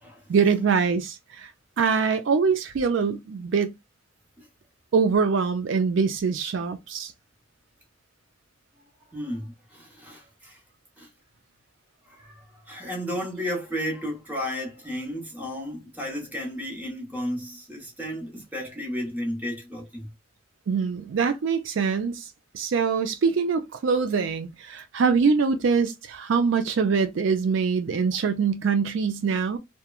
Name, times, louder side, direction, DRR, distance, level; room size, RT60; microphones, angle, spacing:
voice 1, 0.3-1.5 1.8-3.7 4.9-7.1 20.7-22.3 22.5-29.6, right 5 dB, 65° right, 0.4 m, -24 dB
voice 2, 9.1-10.6 11.0-11.1 12.1-20.1, equal, 10° right, 0.9 m, -33 dB
2.9 x 2.2 x 2.2 m
head